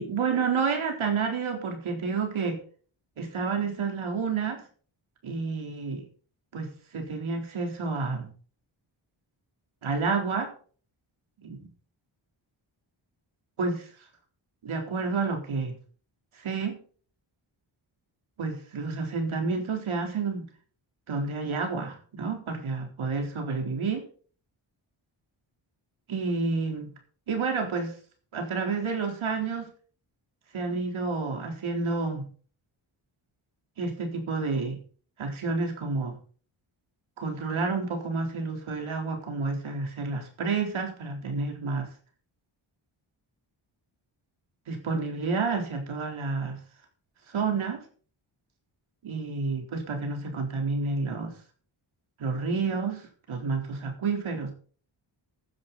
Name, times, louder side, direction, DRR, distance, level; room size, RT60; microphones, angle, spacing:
voice 1, 0.0-2.6 3.2-4.6 5.2-6.0 6.5-8.3 9.8-10.5 11.4-11.6 13.6-13.9 14.6-15.8 16.3-16.8 18.4-20.4 21.1-24.1 26.1-26.9 27.3-27.9 28.3-29.7 30.5-32.3 33.8-34.8 35.2-36.2 37.2-41.9 44.7-46.6 47.3-47.8 49.0-51.3 52.2-54.5, right 4 dB, 90° right, 3 dB, 4.0 m, -30 dB
15.5 x 10.5 x 4.2 m, 0.42 s
wide cardioid pair, 100°, 47 cm